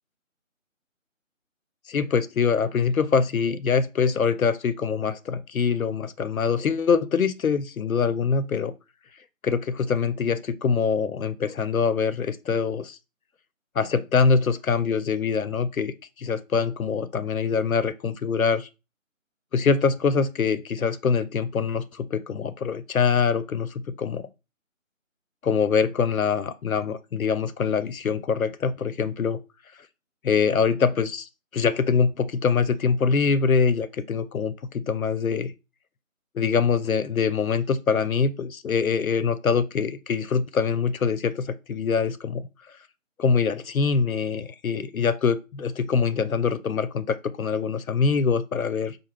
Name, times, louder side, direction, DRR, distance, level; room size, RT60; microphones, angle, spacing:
voice 1, 1.9-8.7 9.4-13.0 13.8-18.7 19.5-24.3 25.4-29.4 30.2-35.5 36.3-42.5 43.2-49.0, left 5 dB, 85° left, 0.5 m, -24 dB
4.4 x 2.2 x 3.2 m
figure-of-eight pair, 160°, 41 cm